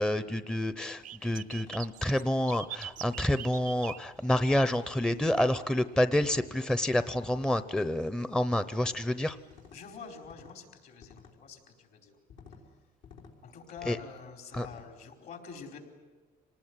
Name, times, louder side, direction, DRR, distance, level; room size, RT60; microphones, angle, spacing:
voice 1, 0.0-9.4 13.9-14.0 14.5-14.7, left 1 dB, 5° left, 12 dB, 0.7 m, -28 dB
sound 1, 0.7-1.0 1.5-1.7 2.2-2.5 3.0-3.3 4.3-4.7 5.2-5.6 6.1-6.5 7.1-7.5 8.8-9.1 9.5-9.8 10.2-10.6 11.0-11.3 12.3-12.6 13.0-13.3 13.8-14.1 14.5-14.9, left 6 dB, 80° left, 4.3 m, -53 dB
sound 2, 1.0-5.2 5.5-5.8 6.3-6.4 7.6-7.8 8.2-8.3 9.4-9.5 10.1-10.2, right 10 dB, 55° right, 0.7 m, -43 dB
voice 2, 9.7-12.1 13.4-15.8, left 6 dB, 65° left, 4 dB, 4.7 m, -46 dB
26.5 x 19.0 x 9.7 m, 1.4 s
cardioid pair, 110°, 17 cm